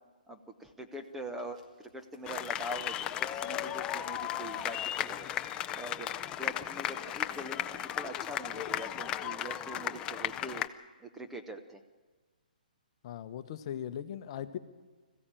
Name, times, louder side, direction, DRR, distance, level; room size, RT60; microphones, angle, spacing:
voice 1, 0.3-5.3 5.7-6.1 6.4-10.7 11.0-11.8, right 1 dB, 5° right, 5 dB, 0.9 m, -43 dB
sound 1, 0.9-8.1, right 1 dB, 50° right, 4.1 m, -62 dB
sound 2, 2.3-10.7, left 11 dB, 15° left, 0.6 m, -35 dB
voice 2, 13.0-14.6, left 10 dB, 40° left, 11 dB, 1.0 m, -39 dB
21.0 x 15.0 x 9.0 m, 1.3 s
hypercardioid pair, 155°, 5 cm